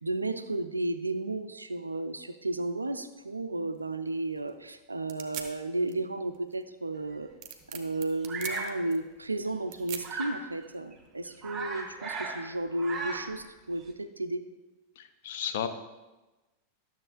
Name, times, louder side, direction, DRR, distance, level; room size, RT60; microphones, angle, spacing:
voice 1, 0.0-7.3 7.7-14.4, right 2 dB, 80° right, 10 dB, 0.5 m, -33 dB
sound 1, 3.0-11.1, right 9 dB, 40° right, 0.9 m, -46 dB
Bird vocalization bird call bird song, 8.3-8.8 10.0-10.4 10.9-11.0 11.3-12.4 12.7-13.4, right 3 dB, 20° right, 1.5 m, -36 dB
voice 2, 15.0-15.7, left 9 dB, 55° left, 9 dB, 0.6 m, -33 dB
12.0 x 7.1 x 2.5 m, 1.1 s
figure-of-eight pair, 90°, 0 cm